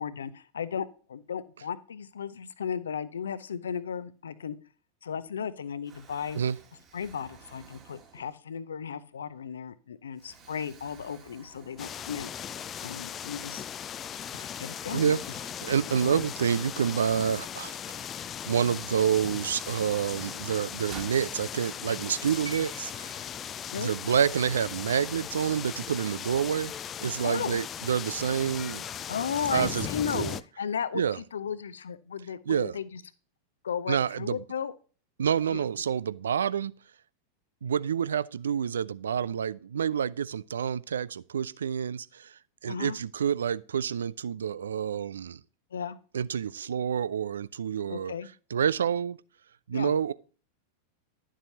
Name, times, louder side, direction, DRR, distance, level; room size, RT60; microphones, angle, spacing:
voice 1, 0.0-4.6 5.0-6.4 6.9-12.3 12.8-13.6 14.3-15.2 16.0-16.3 23.7-24.0 27.2-27.6 29.1-30.3 30.6-33.0 33.6-34.7 35.5-35.6 42.7-43.0 45.7-46.0 47.9-48.3 49.7-50.0, left 7 dB, 65° left, 0.6 m, -35 dB
Explosion, 5.1-5.5 5.8-8.7 9.3-9.4 10.2-12.4 12.8-12.9 14.1-16.7 18.2-18.3 18.7-21.2, right 5 dB, 25° right, 2.0 m, -53 dB
sound 1, 11.8-30.4, left 9 dB, 25° left, 0.4 m, -38 dB
voice 2, 15.6-18.1 18.5-23.2 23.8-26.7 27.0-28.8 29.5-29.9 30.1-30.4 30.9-31.2 32.5-32.8 33.9-34.4 35.2-36.8 37.6-45.4 46.1-48.1 48.5-49.2 49.7-50.1, right 8 dB, 65° right, 0.3 m, -28 dB
sound 2, 22.4-26.6 27.8-27.9, right 4 dB, 85° right, 1.3 m, -50 dB
11.5 x 7.4 x 2.8 m
figure-of-eight pair, 90°, 0 cm